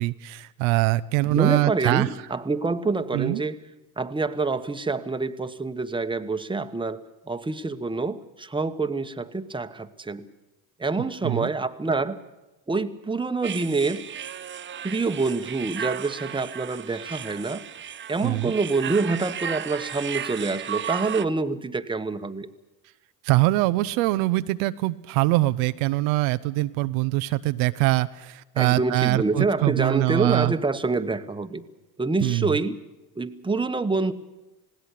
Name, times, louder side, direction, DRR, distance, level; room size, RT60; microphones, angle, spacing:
voice 1, 0.0-2.1 3.1-3.4 11.2-11.5 18.2-18.5 23.2-30.5 32.2-32.6, right 19 dB, 75° right, 13 dB, 0.7 m, -23 dB
voice 2, 1.3-3.6 4.0-10.3 10.8-12.2 12.7-14.1 14.8-17.6 18.1-22.5 28.6-31.6 32.0-32.8 33.2-34.1, right 3 dB, 10° right, 9 dB, 1.1 m, -26 dB
sound 1, 13.4-21.2, right 9 dB, 25° right, 0.6 m, -35 dB
20.0 x 16.5 x 8.3 m, 1.0 s
hypercardioid pair, 65°, 44 cm